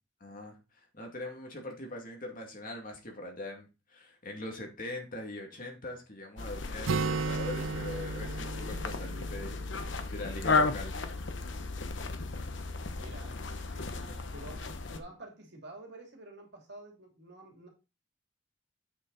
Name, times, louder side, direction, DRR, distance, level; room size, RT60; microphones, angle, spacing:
voice 1, 0.2-9.5 10.1-11.0 14.0-14.2, left 1 dB, 45° left, 2 dB, 2.3 m, -42 dB
sound 1, 6.4-15.0, left 3 dB, 65° left, 1.0 m, -34 dB
Acoustic guitar, 6.9-10.6, right 4 dB, 80° right, 0.5 m, -35 dB
voice 2, 13.0-13.4 13.7-17.7, right 2 dB, 60° right, 1 dB, 2.7 m, -49 dB
8.2 x 6.4 x 4.0 m, 0.28 s
head